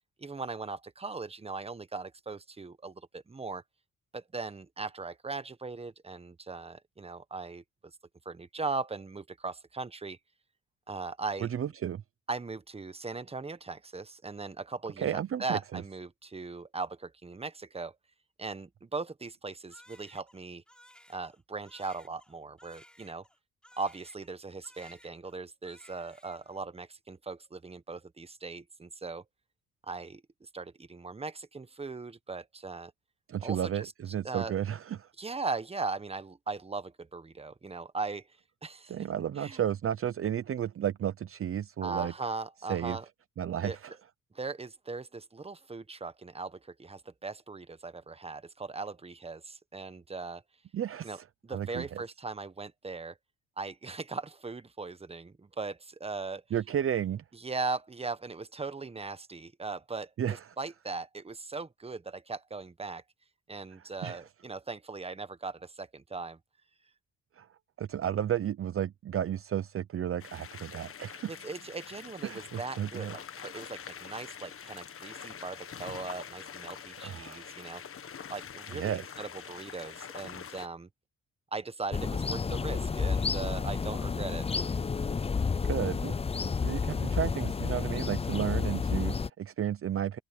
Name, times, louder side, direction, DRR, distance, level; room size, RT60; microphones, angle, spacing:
voice 1, 0.2-3.6 4.1-7.6 8.2-10.2 10.9-11.5 12.3-17.9 18.4-20.6 21.1-23.2 23.8-29.2 29.9-30.2 30.5-32.9 33.4-33.9 34.2-34.5 35.2-38.3 38.6-39.0 39.4-39.6 41.8-43.0 43.6-43.8 44.3-50.4 51.0-53.2 53.6-56.4 57.3-63.0 63.5-66.4 71.3-78.0 78.3-80.9 81.5-84.5, right 4 dB, 20° right, 1.3 m, -39 dB
voice 2, 11.4-12.0 15.0-15.8 33.3-35.1 38.9-42.1 42.7-43.0 43.4-43.9 50.7-51.2 51.5-51.8 56.5-57.2 60.2-60.4 64.0-64.2 67.4-67.5 67.8-71.4 72.2-73.1 77.0-77.5 78.7-79.0 85.7-86.1 86.6-90.2, right 10 dB, 45° right, 0.8 m, -33 dB
Crying sobbing, 19.7-24.4 24.6-25.4 25.6-26.6, equal, 5° left, 6.3 m, -58 dB
sound 1, 70.2-80.7, left 8 dB, 45° left, 1.5 m, -45 dB
sound 2, 81.9-89.3, left 5 dB, 20° left, 0.6 m, -30 dB
cardioid pair, 90°, 30 cm